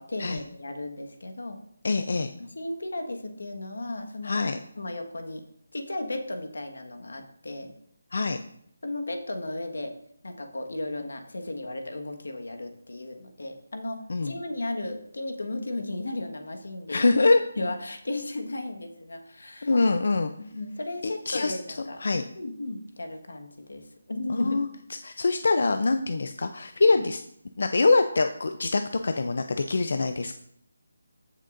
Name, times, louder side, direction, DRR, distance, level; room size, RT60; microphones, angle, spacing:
voice 1, 0.0-1.6 2.4-4.4 4.8-5.4 5.7-7.7 8.8-9.9 10.2-17.1 17.6-19.7 20.4-22.0 22.3-24.6 26.9-27.0, left 2 dB, 85° left, 5 dB, 1.5 m, -35 dB
voice 2, 1.8-2.3 4.2-4.6 8.1-8.4 14.1-14.3 16.9-17.4 19.6-20.3 21.0-21.6 22.0-22.2 24.3-24.7 25.0-27.2 27.6-30.3, left 3 dB, 55° left, 8 dB, 0.5 m, -24 dB
15.0 x 6.4 x 2.6 m, 0.71 s
figure-of-eight pair, 175°, 0 cm